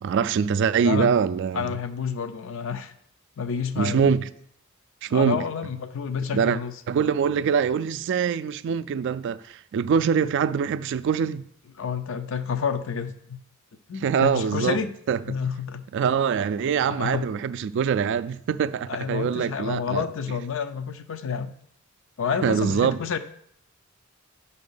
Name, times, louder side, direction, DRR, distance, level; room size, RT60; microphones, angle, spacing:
voice 1, 0.0-1.7 3.8-4.3 5.0-5.4 6.3-6.6 6.9-11.4 14.0-14.8 15.1-15.2 15.9-20.1 22.4-23.0, right 7 dB, 60° right, 0.3 m, -24 dB
voice 2, 0.8-1.2 1.5-2.9 3.4-4.2 5.1-6.7 11.8-13.4 13.9-14.9 15.3-15.9 16.9-17.3 18.9-21.5 22.2-23.2, left 6 dB, 65° left, 0.5 m, -29 dB
5.8 x 4.1 x 5.5 m
head